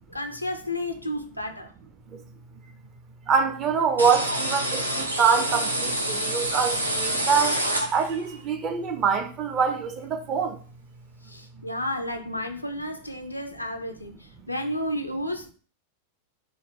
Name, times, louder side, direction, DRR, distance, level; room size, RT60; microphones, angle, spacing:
voice 1, 0.0-1.7 4.3-4.4 7.8-7.9 11.2-15.5, left 1 dB, 90° left, 0.4 m, -32 dB
voice 2, 3.3-7.6 7.9-10.6, right 6 dB, 35° right, 0.5 m, -24 dB
sound 1, 4.0-8.3, right 1 dB, 85° right, 0.5 m, -27 dB
3.4 x 2.1 x 3.6 m
figure-of-eight pair, 90°, 0 cm